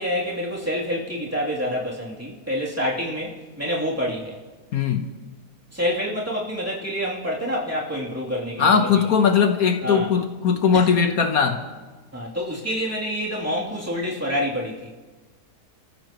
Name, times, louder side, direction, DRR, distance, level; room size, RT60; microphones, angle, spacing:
voice 1, 0.0-4.4 5.7-9.0 9.8-10.1 10.7-10.9 12.1-14.9, equal, 10° right, -5 dB, 3.0 m, -27 dB
voice 2, 4.7-5.1 8.6-11.6, left 6 dB, 65° left, 6 dB, 1.4 m, -19 dB
29.0 x 14.5 x 3.1 m, 1.3 s
omnidirectional pair, 1.7 m